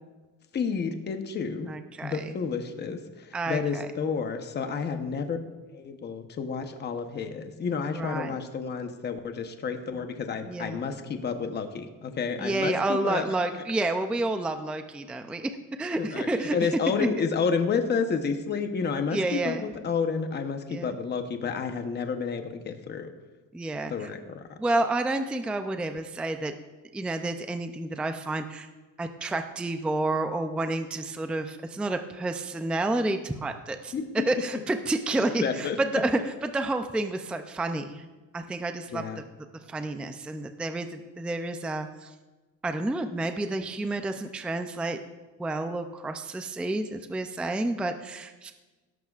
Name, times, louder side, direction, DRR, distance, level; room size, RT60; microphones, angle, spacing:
voice 1, 0.5-1.7 2.0-5.4 5.7-13.2 16.0-23.1 23.9-24.6 33.9-34.2 35.4-35.8 38.9-39.2, left 5 dB, 30° left, 6 dB, 0.9 m, -30 dB
voice 2, 1.6-2.4 3.3-3.9 7.9-8.3 10.4-10.8 12.4-16.8 19.1-19.7 20.7-21.0 23.5-24.1 24.6-26.5 26.9-28.7 29.0-33.9 34.3-38.0 38.3-39.2 39.7-42.1 42.6-45.0 45.4-48.5, right 2 dB, 5° right, 7 dB, 0.4 m, -30 dB
17.0 x 12.5 x 2.4 m, 1.2 s
cardioid pair, 155°, 34 cm